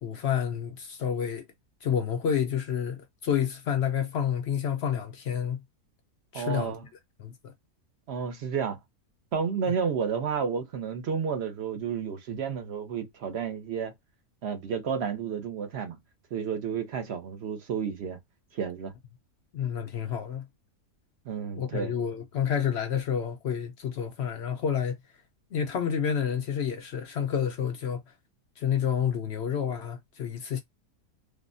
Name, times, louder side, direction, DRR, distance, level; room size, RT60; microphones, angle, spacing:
voice 1, 0.0-1.5 1.8-5.6 6.3-6.8 7.2-7.5 9.7-9.8 19.5-20.4 21.5-25.0 25.5-28.1 28.6-30.6, left 8 dB, 65° left, 0.6 m, -29 dB
voice 2, 6.3-6.8 8.1-8.8 9.3-13.9 14.4-16.0 16.3-18.2 18.5-18.9 21.3-21.9, right 7 dB, 55° right, 0.9 m, -31 dB
3.4 x 2.1 x 2.5 m
omnidirectional pair, 1.6 m